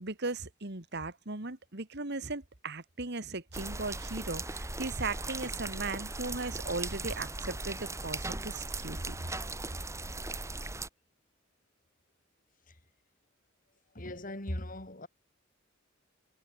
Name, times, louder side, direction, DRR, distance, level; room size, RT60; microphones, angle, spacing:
voice 1, 0.0-9.2, right 3 dB, 55° right, 2.3 m, -37 dB
sound 1, 3.5-10.9, right 2 dB, 15° right, 2.2 m, -38 dB
voice 2, 13.9-15.1, left 1 dB, 45° left, 4.3 m, -39 dB
head